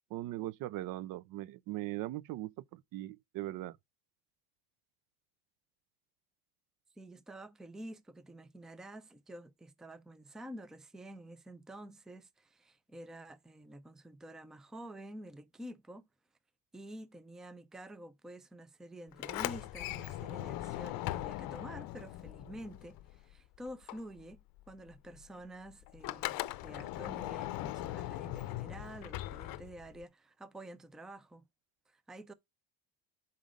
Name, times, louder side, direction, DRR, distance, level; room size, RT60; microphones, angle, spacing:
voice 1, 0.1-3.8, right 15 dB, 60° right, 0.5 m, -40 dB
voice 2, 7.0-16.1 16.7-26.4 26.6-31.5 31.9-32.3, right 1 dB, ahead, 0.4 m, -49 dB
Sliding door, 19.1-23.4 23.7-30.0, left 16 dB, 65° left, 0.6 m, -40 dB
7.5 x 4.2 x 5.0 m
cardioid pair, 125°, 38 cm